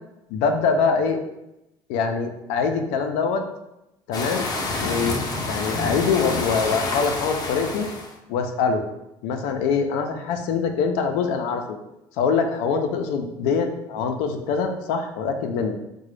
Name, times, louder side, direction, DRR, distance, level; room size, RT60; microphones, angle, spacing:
voice 1, 0.3-1.2 1.9-3.4 4.1-4.5 4.8-5.2 5.5-7.9 8.3-8.8 9.2-11.8 12.2-15.8, left 5 dB, 80° left, 5 dB, 0.5 m, -24 dB
sound 1, 4.1-8.1, left 2 dB, 35° left, 0.6 m, -28 dB
3.7 x 2.2 x 3.1 m, 0.90 s
supercardioid pair, 90°, 11 cm